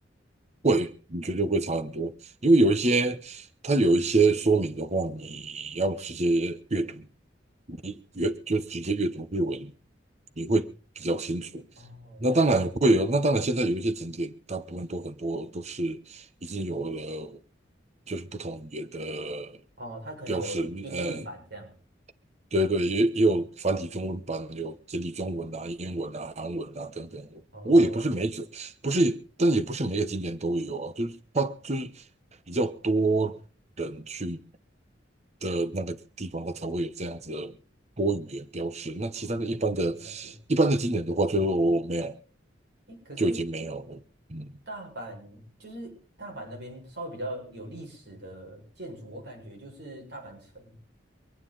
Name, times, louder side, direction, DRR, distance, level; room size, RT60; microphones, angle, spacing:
voice 1, 0.6-2.1 2.4-7.1 7.7-9.7 10.4-10.7 11.0-11.7 12.2-17.4 18.1-19.5 20.3-21.2 22.5-32.0 32.5-33.4 33.8-34.4 35.4-37.6 38.0-42.2 43.2-44.0 44.3-44.5, right 2 dB, 40° right, 1.0 m, -27 dB
voice 2, 11.8-12.7 19.8-21.7 27.5-28.1 39.2-40.3 42.9-43.4 44.7-50.8, right 1 dB, 65° right, 6.8 m, -41 dB
24.5 x 9.6 x 4.1 m
head